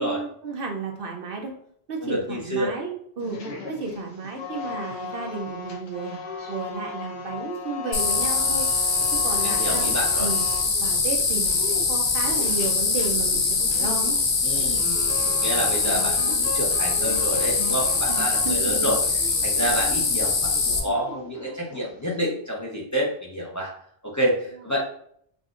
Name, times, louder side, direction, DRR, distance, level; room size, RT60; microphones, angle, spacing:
voice 1, 0.0-1.5 1.9-3.4 3.7-6.2 6.5-8.7 9.2-9.9 10.2-10.5 10.8-14.1 14.6-14.7 18.1-18.9, right 4 dB, 65° right, 2 dB, 0.8 m, -33 dB
voice 2, 2.0-2.7 9.4-10.3 14.4-15.0 15.4-19.0 19.4-23.7 24.0-24.8, equal, 20° left, -4 dB, 0.7 m, -28 dB
sound 1, 3.2-22.2, left 4 dB, 80° left, 1.1 m, -37 dB
sound 2, 7.9-20.8, left 4 dB, 55° left, 0.8 m, -23 dB
6.1 x 2.5 x 2.4 m, 0.65 s
omnidirectional pair, 1.1 m